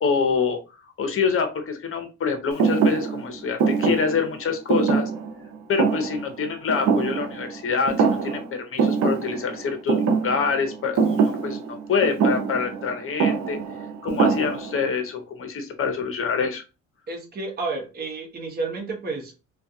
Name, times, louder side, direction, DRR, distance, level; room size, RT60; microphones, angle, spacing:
voice 1, 0.0-0.6 1.0-5.1 5.7-13.6 14.0-16.6, left 5 dB, 45° left, 6 dB, 0.8 m, -26 dB
Thump thud, 2.6-7.6 7.9-8.5 8.8-14.9, right 5 dB, 70° right, 0.6 m, -24 dB
voice 2, 17.1-19.4, right 3 dB, 30° right, 1 dB, 0.8 m, -31 dB
2.4 x 2.3 x 2.6 m, 0.30 s
cardioid pair, 90°, 30 cm